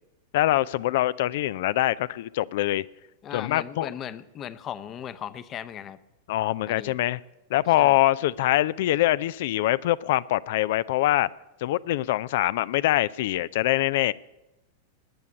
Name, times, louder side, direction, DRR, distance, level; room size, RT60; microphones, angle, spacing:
voice 1, 0.3-2.8 3.3-3.9 6.3-7.2 7.5-11.3 11.6-14.1, left 15 dB, 55° left, 18 dB, 0.4 m, -24 dB
voice 2, 3.2-6.0 6.7-6.9 7.8-8.0, left 9 dB, 30° left, 14 dB, 0.8 m, -37 dB
20.0 x 9.6 x 6.9 m, 0.98 s
figure-of-eight pair, 90°, 0 cm